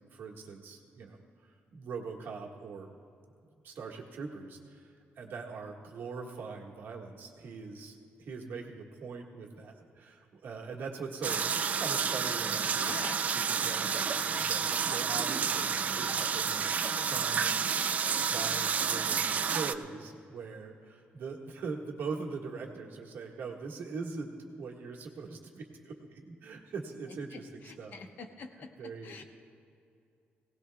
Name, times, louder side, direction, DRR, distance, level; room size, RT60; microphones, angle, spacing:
voice 1, 0.1-1.2 1.7-2.9 3.6-13.0 13.3-16.7 17.0-17.6 18.2-28.0 28.8-29.2, right 4 dB, 60° right, 0 dB, 1.6 m, -42 dB
sound 1, 11.2-19.7, right 6 dB, 40° right, 0.4 m, -30 dB
voice 2, 12.8-13.3 27.1-29.2, left 4 dB, 55° left, 5 dB, 1.0 m, -46 dB
21.0 x 17.5 x 2.3 m, 2.5 s
cardioid pair, 170°, 4 cm